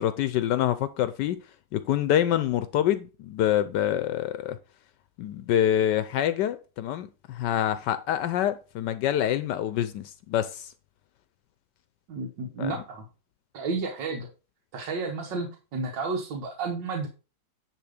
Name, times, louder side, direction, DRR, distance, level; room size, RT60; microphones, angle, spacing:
voice 1, 0.0-1.4 1.7-4.6 5.2-10.7 12.6-12.8, left 11 dB, 75° left, 12 dB, 1.2 m, -26 dB
voice 2, 12.1-13.1 13.5-14.3 14.7-17.1, right 4 dB, 80° right, 1 dB, 1.9 m, -31 dB
10.0 x 3.5 x 5.0 m, 0.32 s
omnidirectional pair, 1.9 m